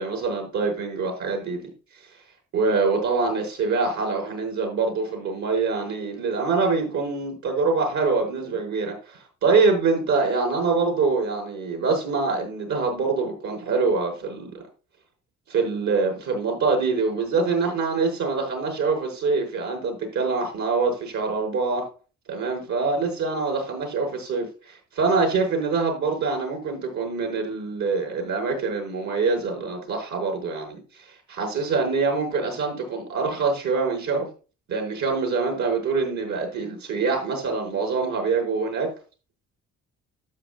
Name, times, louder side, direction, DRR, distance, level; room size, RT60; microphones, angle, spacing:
voice 1, 0.0-1.6 2.5-14.6 15.5-21.9 22.3-34.3 34.7-38.9, right 4 dB, 70° right, 5.8 m, -25 dB
12.5 x 8.7 x 2.5 m
cardioid pair, 90°, 30 cm